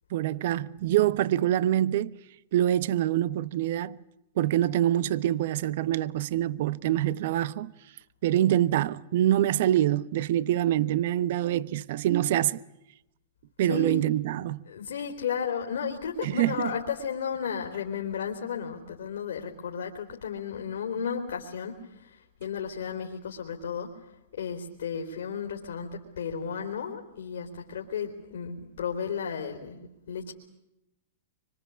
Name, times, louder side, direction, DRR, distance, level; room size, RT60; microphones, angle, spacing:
voice 1, 0.1-2.2 2.5-4.0 4.4-7.7 8.2-12.6 13.6-14.6 16.2-16.7, right 12 dB, 60° right, 1.0 m, -25 dB
voice 2, 13.7-14.0 14.7-23.9 24.3-30.3, left 7 dB, 75° left, 3.8 m, -34 dB
25.5 x 25.0 x 8.5 m
hypercardioid pair, 115°, 0 cm